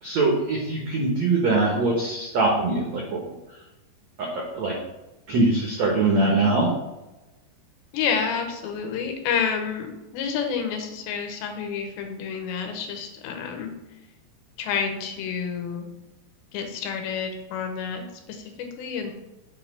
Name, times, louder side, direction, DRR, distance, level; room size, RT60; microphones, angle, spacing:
voice 1, 0.0-3.2 4.2-4.7 5.3-6.7, right 3 dB, 85° right, -1 dB, 1.5 m, -22 dB
voice 2, 7.9-13.7 14.6-15.9 16.5-19.1, left 6 dB, 80° left, 4 dB, 3.3 m, -29 dB
7.4 x 4.7 x 6.0 m, 1.0 s
omnidirectional pair, 5.1 m